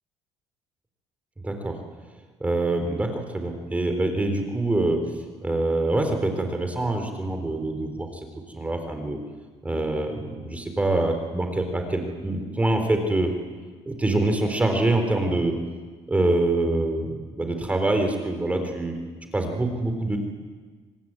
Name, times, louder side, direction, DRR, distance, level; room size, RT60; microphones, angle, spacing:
voice 1, 1.4-1.8 2.4-5.0 5.4-8.3 8.5-9.2 9.6-13.3 13.9-15.6 16.1-19.0 19.3-20.2, right 2 dB, 15° right, 5 dB, 4.0 m, -25 dB
26.0 x 19.5 x 9.7 m, 1.4 s
cardioid pair, 120°, 11 cm